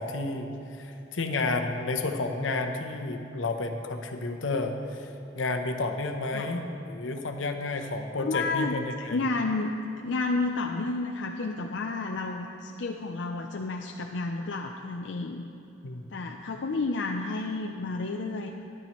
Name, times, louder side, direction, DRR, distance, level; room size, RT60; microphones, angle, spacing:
voice 1, 0.0-9.2 15.8-16.1, left 3 dB, 85° left, 5 dB, 0.8 m, -31 dB
voice 2, 8.2-9.7 10.0-15.5 16.1-18.5, left 3 dB, 65° left, 2 dB, 0.5 m, -31 dB
13.5 x 11.0 x 3.1 m, 2.9 s
head